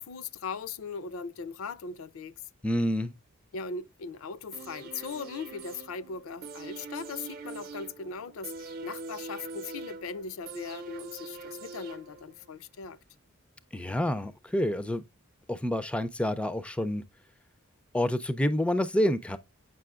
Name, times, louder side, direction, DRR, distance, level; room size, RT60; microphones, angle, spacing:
voice 1, 0.0-2.3 3.5-13.0, left 5 dB, 70° left, 0.4 m, -39 dB
voice 2, 2.6-3.1 13.7-15.0 15.5-17.0 17.9-19.4, left 1 dB, 5° left, 0.3 m, -28 dB
sound 1, 4.5-12.5 12.8-12.9, right 3 dB, 45° right, 0.7 m, -43 dB
7.6 x 5.5 x 2.3 m
head